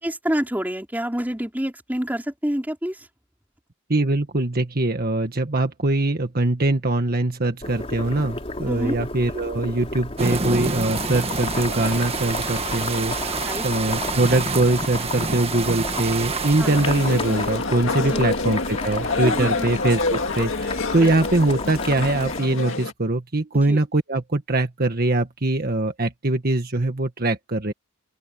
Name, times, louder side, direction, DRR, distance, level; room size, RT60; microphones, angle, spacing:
voice 1, 0.0-3.1 8.7-9.0 13.4-13.6 16.6-16.8 18.0-18.2 19.2-19.7 23.5-23.8, equal, 10° right, 4.2 m, -27 dB
voice 2, 3.9-27.7, right 2 dB, 45° right, 1.6 m, -22 dB
Boiling, 7.6-22.4, left 2 dB, 30° left, 3.5 m, -32 dB
sound 1, 10.2-17.5, right 4 dB, 30° right, 1.6 m, -28 dB
sound 2, 16.6-22.9, left 3 dB, 70° left, 2.1 m, -27 dB
open air
head